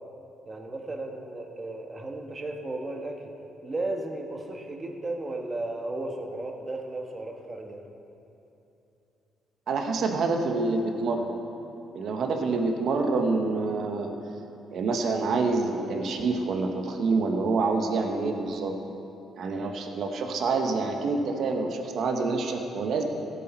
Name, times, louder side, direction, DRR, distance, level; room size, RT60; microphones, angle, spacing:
voice 1, 0.5-3.3 3.6-7.8, right 2 dB, 30° right, 2 dB, 1.4 m, -34 dB
voice 2, 9.7-11.4 11.9-14.1 14.7-18.7 19.4-23.0, right 3 dB, 65° right, 4 dB, 1.1 m, -27 dB
15.5 x 8.5 x 4.5 m, 2.9 s
cardioid pair, 90°, 0 cm